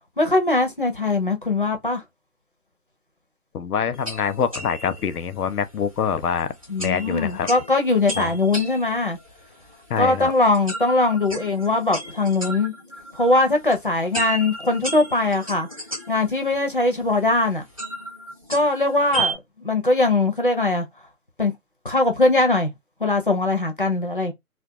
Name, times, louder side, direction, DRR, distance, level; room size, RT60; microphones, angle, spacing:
voice 1, 0.2-2.0 6.7-9.2 10.0-12.7 13.1-15.7 16.1-17.6 18.5-19.4 19.6-20.9 21.4-21.5 21.8-22.7 23.0-24.3, left 2 dB, 40° left, 0.4 m, -21 dB
voice 2, 3.5-6.5 6.8-7.5 8.2-8.3 9.9-10.3, left 7 dB, 90° left, 0.6 m, -25 dB
sound 1, 3.9-19.3, right 2 dB, 25° right, 0.5 m, -35 dB
2.2 x 2.1 x 2.7 m
figure-of-eight pair, 155°, 44 cm